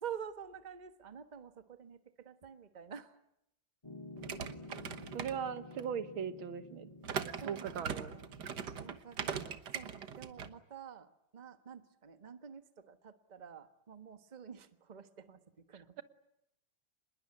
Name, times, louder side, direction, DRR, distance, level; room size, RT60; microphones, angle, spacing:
voice 1, 0.0-3.2 4.8-5.2 7.4-8.4 8.8-16.0, right 8 dB, 25° right, 9 dB, 1.2 m, -49 dB
Piano, 3.8-8.9, left 2 dB, 15° left, 2.1 m, -51 dB
sound 1, 4.2-5.9 7.0-10.5, right 7 dB, 60° right, 1.8 m, -41 dB
voice 2, 5.1-6.9 7.3-8.1, right 7 dB, 90° right, 11 dB, 2.2 m, -39 dB
26.5 x 21.0 x 9.8 m, 0.80 s
omnidirectional pair, 2.2 m